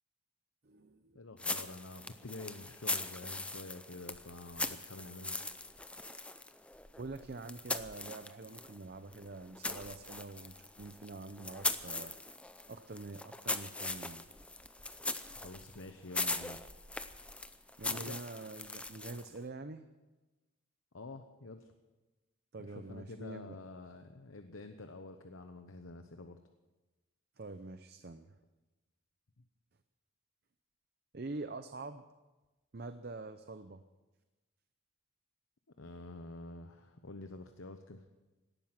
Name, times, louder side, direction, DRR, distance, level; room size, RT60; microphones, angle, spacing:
voice 1, 0.6-1.2 7.0-12.1 12.7-14.2 17.8-19.9 22.5-23.6 27.4-28.3 31.1-32.0 32.7-33.8, right 3 dB, 50° right, 10 dB, 0.6 m, -45 dB
voice 2, 1.1-5.4 15.3-16.6 18.1-18.2 20.9-21.7 22.6-26.4 35.8-38.0, left 2 dB, 80° left, 7 dB, 0.9 m, -48 dB
sound 1, 1.4-8.8 9.1-19.4, left 2 dB, 5° left, 0.5 m, -40 dB
18.0 x 12.5 x 5.9 m, 1.1 s
head